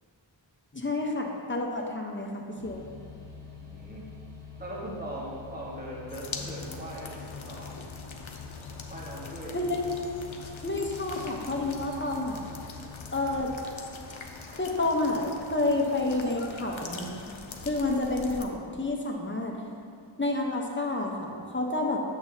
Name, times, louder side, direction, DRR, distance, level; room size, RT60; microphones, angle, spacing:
voice 1, 0.7-2.8 9.5-9.8 10.6-12.4 13.1-13.5 14.5-17.4 17.6-19.6 20.2-22.0, left 2 dB, 25° left, 0 dB, 1.0 m, -29 dB
sound 1, 2.6-13.4, left 6 dB, 10° left, 1.4 m, -46 dB
voice 2, 3.6-4.0 4.6-7.7 8.9-9.7, right 1 dB, 20° right, -5 dB, 1.5 m, -40 dB
sound 2, 6.1-18.4, left 4 dB, 80° left, 0.7 m, -43 dB
8.5 x 7.1 x 2.8 m, 2.3 s
wide cardioid pair, 45°, 47 cm